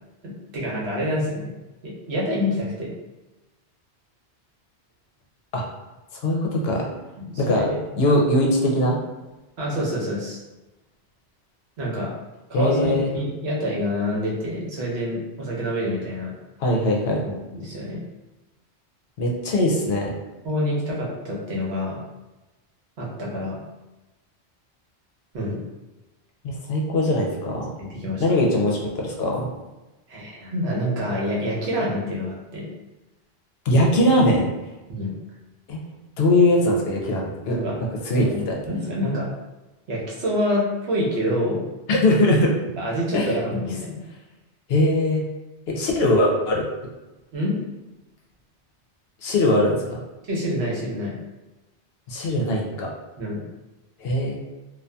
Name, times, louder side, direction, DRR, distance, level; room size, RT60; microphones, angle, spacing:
voice 1, 0.2-1.5 1.8-2.9 7.2-7.6 7.9-8.2 9.6-10.4 11.8-12.1 12.5-16.3 17.2-18.0 20.4-22.0 23.0-23.6 25.3-25.6 27.8-28.2 30.1-32.7 34.9-35.1 37.6-37.8 38.1-39.3 39.9-41.6 42.8-44.0 47.3-47.6 50.3-51.2 53.2-53.4, equal, 75° right, -4 dB, 1.0 m, -27 dB
voice 2, 6.2-6.9 7.4-7.7 8.0-9.0 12.5-13.1 16.6-17.2 19.2-20.1 26.4-27.6 28.2-29.5 33.7-34.5 35.7-35.8 36.2-37.6 38.1-38.5 41.9-42.5 43.1-43.3 44.7-45.2 45.7-46.6 49.2-50.0 52.1-52.9 54.0-54.4, left 1 dB, 70° left, -1 dB, 0.8 m, -21 dB
2.6 x 2.3 x 2.2 m, 1.1 s
omnidirectional pair, 1.1 m